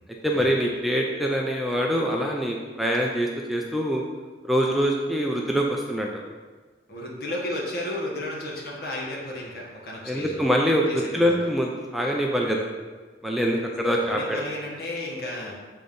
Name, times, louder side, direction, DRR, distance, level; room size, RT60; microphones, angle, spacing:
voice 1, 0.2-4.0 4.5-6.1 10.1-12.7 13.2-14.4, equal, ahead, 0 dB, 0.5 m, -24 dB
voice 2, 6.9-10.4 10.9-11.4 13.9-15.5, left 1 dB, 60° left, -3 dB, 1.7 m, -33 dB
7.6 x 3.8 x 5.4 m, 1.4 s
head